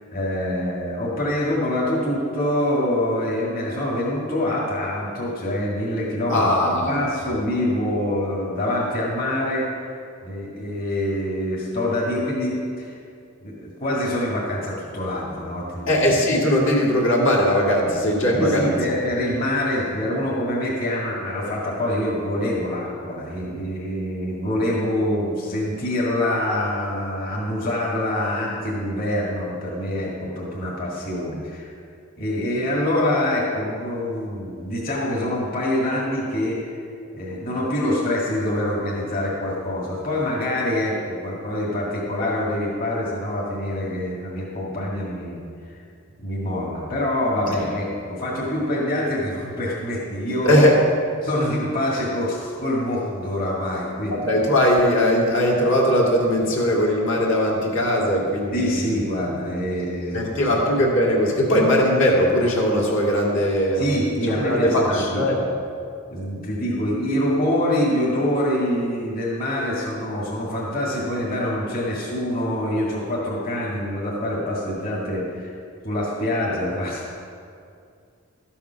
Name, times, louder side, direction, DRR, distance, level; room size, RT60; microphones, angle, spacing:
voice 1, 0.1-12.9 13.4-16.0 18.3-31.7 32.2-36.7 37.1-45.4 46.2-50.6 51.2-54.3 58.5-60.5 63.8-65.2 66.1-75.5 75.8-77.1, left 1 dB, 40° left, -5 dB, 2.0 m, -25 dB
voice 2, 6.3-7.0 15.9-18.9 50.4-50.9 54.1-59.0 60.1-63.9 64.2-65.4, equal, 60° left, -3 dB, 2.2 m, -19 dB
13.0 x 7.1 x 5.8 m, 2.4 s
head